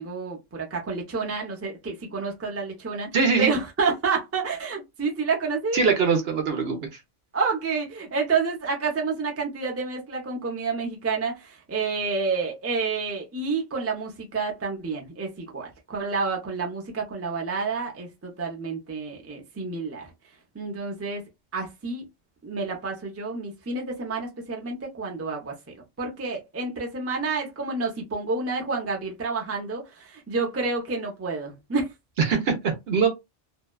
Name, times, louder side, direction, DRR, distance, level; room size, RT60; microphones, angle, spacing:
voice 1, 0.0-3.1 3.4-5.8 7.3-20.1 20.5-21.2 21.5-22.1 22.4-31.9, right 4 dB, 20° right, 0.4 m, -29 dB
voice 2, 3.1-3.5 5.7-7.0 32.3-33.1, right 5 dB, 60° right, 0.8 m, -22 dB
2.7 x 2.1 x 2.2 m
omnidirectional pair, 1.3 m